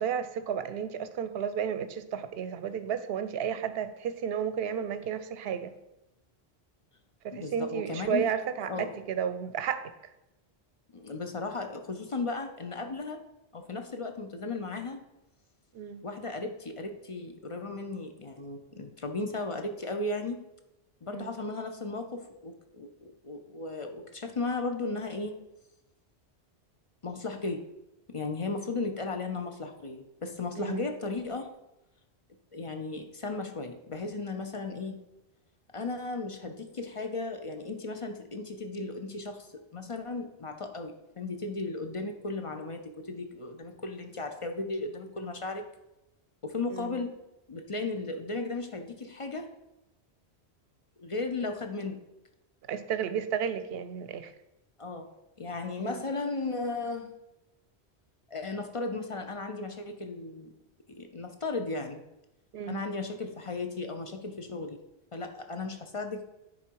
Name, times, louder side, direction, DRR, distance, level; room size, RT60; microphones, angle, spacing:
voice 1, 0.0-5.7 7.2-9.9 15.7-16.0 21.1-21.3 30.6-30.9 46.7-47.0 52.7-54.3 55.8-56.0 62.5-62.8, right 8 dB, 70° right, 12 dB, 0.8 m, -32 dB
voice 2, 7.3-8.3 8.6-8.9 10.9-13.2 13.5-15.0 16.0-20.4 21.0-25.4 27.0-27.6 28.1-31.5 32.5-35.0 35.7-45.7 46.4-47.1 47.5-49.5 51.0-52.0 54.8-55.1 55.4-57.2 58.3-60.5 60.9-62.0 62.7-64.8 65.1-66.2, left 3 dB, 40° left, 5 dB, 0.5 m, -35 dB
9.6 x 3.9 x 4.6 m, 0.92 s
omnidirectional pair, 1.1 m